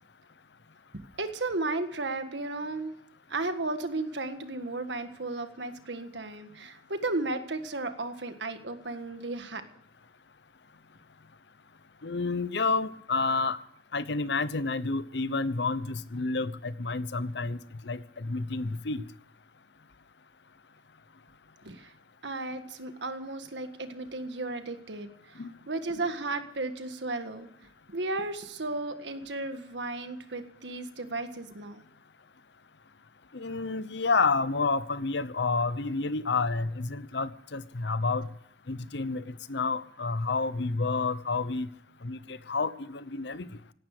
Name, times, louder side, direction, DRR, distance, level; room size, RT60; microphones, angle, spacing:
voice 1, 1.2-2.9 3.3-9.6 21.6-21.9 22.2-27.5 27.9-31.8, right 2 dB, 80° right, 8 dB, 1.7 m, -34 dB
voice 2, 12.0-13.6 13.9-17.6 17.8-19.0 25.4-25.5 33.3-38.3 38.7-41.7 42.0-43.5, left 3 dB, 70° left, 15 dB, 0.9 m, -29 dB
17.0 x 12.0 x 6.7 m, 0.70 s
head